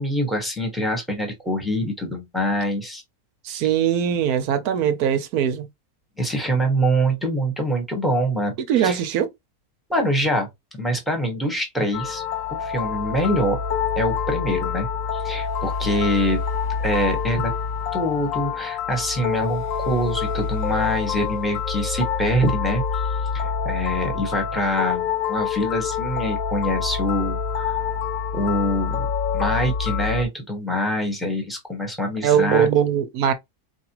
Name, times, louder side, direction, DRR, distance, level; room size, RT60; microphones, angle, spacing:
voice 1, 0.0-3.0 3.5-3.6 6.2-9.0 9.9-12.2 12.5-13.6 14.0-16.4 16.8-17.5 17.9-27.8 28.3-29.1 29.3-32.7, equal, ahead, 1.1 m, -25 dB
voice 2, 3.4-5.7 8.7-9.3 32.2-33.3, right 9 dB, 70° right, 1.1 m, -21 dB
sound 1, 11.9-30.2, left 6 dB, 65° left, 0.9 m, -26 dB
4.6 x 2.4 x 2.9 m
omnidirectional pair, 1.7 m